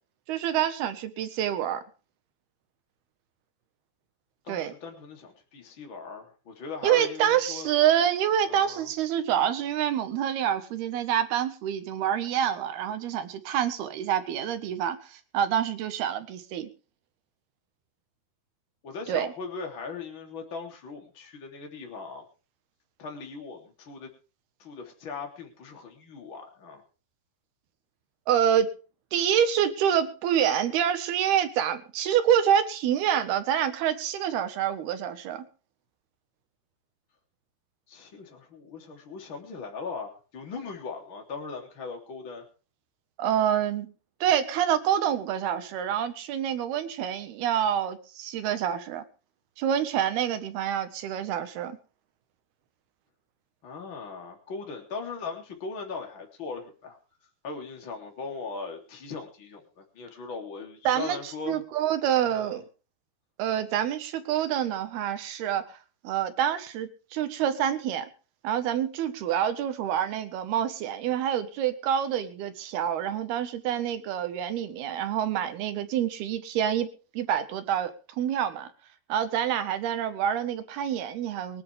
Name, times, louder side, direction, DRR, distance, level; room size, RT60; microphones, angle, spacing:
voice 1, 0.3-1.8 4.5-4.7 6.8-16.7 19.1-19.3 28.3-28.7 29.1-35.5 43.2-43.9 44.2-49.0 49.6-51.8 60.8-61.2 61.5-62.6 63.4-65.6 66.0-68.1 68.4-76.9 77.1-77.9 78.2-78.7 79.1-81.6, right 10 dB, 70° right, 10 dB, 3.3 m, -27 dB
voice 2, 4.4-7.7 8.5-8.9 18.8-22.2 23.0-24.1 24.6-26.8 37.9-42.4 53.6-57.0 57.4-61.6 62.3-62.6, left 4 dB, 30° left, 2 dB, 3.7 m, -39 dB
23.5 x 10.5 x 3.5 m, 0.36 s
omnidirectional pair, 4.8 m